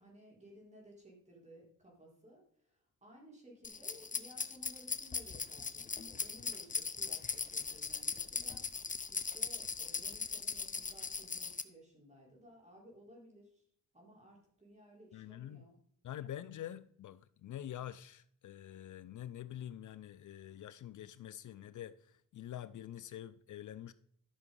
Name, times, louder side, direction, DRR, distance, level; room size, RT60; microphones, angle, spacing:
voice 1, 0.0-13.6 13.9-15.8, equal, 20° right, 4.6 m, -58 dB
sound 1, 3.6-11.6, left 5 dB, 25° left, 0.7 m, -39 dB
voice 2, 15.1-15.7 16.0-23.9, left 11 dB, 65° left, 0.5 m, -46 dB
12.5 x 6.0 x 5.4 m
cardioid pair, 100°, 34 cm